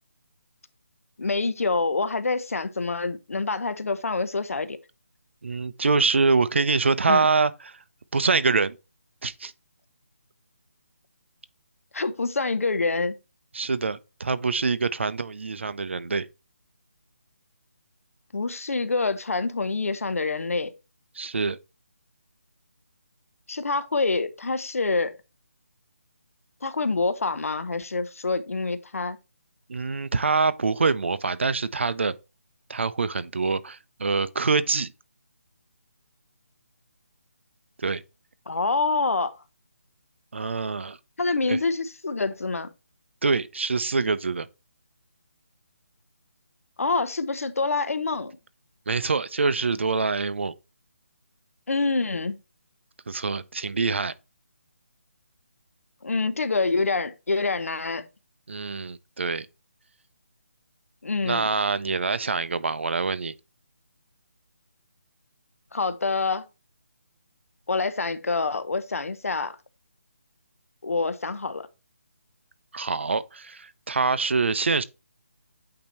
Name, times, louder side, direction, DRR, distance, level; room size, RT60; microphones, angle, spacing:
voice 1, 1.2-4.8 7.1-7.3 11.9-13.2 18.3-20.7 23.5-25.2 26.6-29.2 38.5-39.4 41.2-42.7 46.8-48.3 51.7-52.4 56.0-58.1 61.0-61.5 65.7-66.5 67.7-69.6 70.8-71.7, left 3 dB, 80° left, 0.9 m, -26 dB
voice 2, 5.4-7.8 8.1-8.8 9.2-9.5 13.5-16.3 21.2-21.6 29.7-32.1 32.7-34.9 37.8-38.0 40.3-41.0 41.5-41.6 43.2-44.5 48.9-50.5 53.1-54.1 58.5-59.5 61.2-63.3 72.7-74.8, right 4 dB, 55° right, 0.6 m, -25 dB
8.7 x 2.9 x 4.4 m
hypercardioid pair, 175°, 8 cm